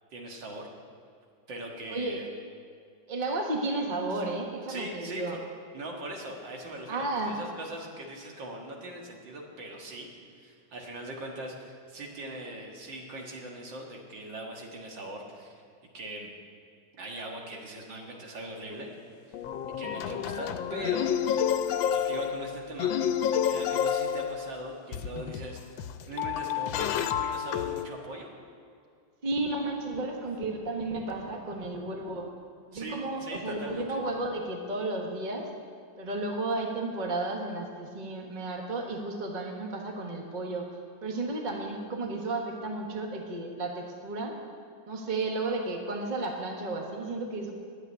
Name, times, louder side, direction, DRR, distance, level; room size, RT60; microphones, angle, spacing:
voice 1, 0.1-0.7 1.5-2.3 4.1-4.2 4.7-5.4 5.7-10.1 10.4-15.6 15.9-16.3 17.0-18.9 19.3-19.4 19.8-21.1 21.8-22.9 23.4-28.3 32.7-34.0, right 1 dB, 75° right, 0 dB, 2.3 m, -40 dB
voice 2, 1.9-2.2 3.1-5.4 6.9-7.3 29.2-32.3 32.7-35.5 36.0-40.7 41.0-44.3 44.9-47.5, right 2 dB, 25° right, 1 dB, 1.3 m, -33 dB
sound 1, 18.7-18.8 19.3-27.9, left 8 dB, 90° left, 1.4 m, -29 dB
11.0 x 7.9 x 9.6 m, 2.3 s
omnidirectional pair, 2.1 m